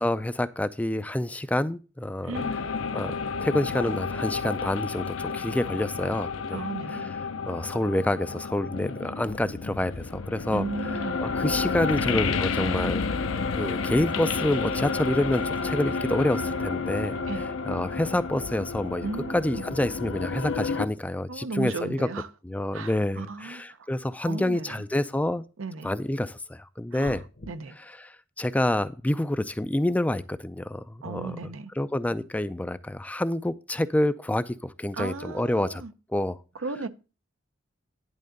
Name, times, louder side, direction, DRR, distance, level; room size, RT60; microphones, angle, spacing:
voice 1, 0.0-2.4 2.9-3.1 3.4-6.6 6.9-7.1 7.5-10.7 11.2-13.0 13.6-17.2 17.7-22.1 22.4-25.4 25.8-27.2 27.9-31.5 31.8-35.8 36.1-36.4, left 1 dB, 5° left, 0.3 m, -28 dB
sound 1, 2.3-20.9, left 4 dB, 80° left, 0.7 m, -31 dB
voice 2, 6.5-7.1 10.5-11.2 17.3-17.4 19.0-19.6 21.3-22.3 22.7-23.9 24.3-24.8 25.6-25.9 26.9-27.8 31.0-31.7 34.9-35.9 36.5-36.9, right 4 dB, 80° right, 0.7 m, -35 dB
sound 2, 27.0-27.5, left 1 dB, 45° left, 0.9 m, -42 dB
11.0 x 3.7 x 6.4 m
head